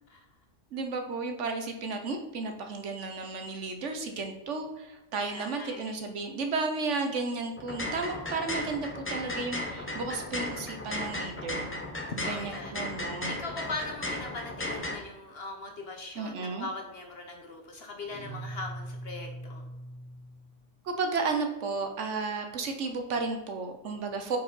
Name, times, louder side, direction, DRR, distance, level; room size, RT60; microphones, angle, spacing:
voice 1, 0.7-11.7 12.2-13.4 16.1-16.7 20.8-24.4, right 4 dB, 60° right, 5 dB, 1.0 m, -33 dB
voice 2, 5.2-5.9 8.0-8.4 12.2-12.7 13.3-19.6, left 2 dB, 50° left, 3 dB, 0.9 m, -40 dB
sound 1, 7.6-15.0, left 1 dB, 20° left, 0.4 m, -35 dB
sound 2, 18.1-20.6, right 1 dB, ahead, 1.1 m, -41 dB
4.9 x 4.4 x 5.5 m, 1.0 s
omnidirectional pair, 1.5 m